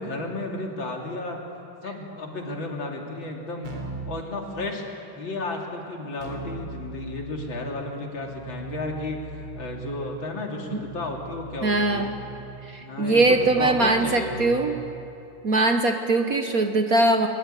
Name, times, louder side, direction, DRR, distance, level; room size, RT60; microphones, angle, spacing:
voice 1, 0.0-1.4 1.8-3.7 4.0-4.8 5.1-12.1 12.8-14.9, left 2 dB, 60° left, 1 dB, 3.5 m, -33 dB
Keyboard (musical), 3.6-4.2 6.2-15.1, right 4 dB, 90° right, 4.3 m, -40 dB
voice 2, 11.6-12.2 12.6-14.8 15.4-17.3, right 2 dB, 50° right, 6 dB, 1.3 m, -21 dB
22.5 x 22.5 x 9.1 m, 2.7 s
omnidirectional pair, 2.3 m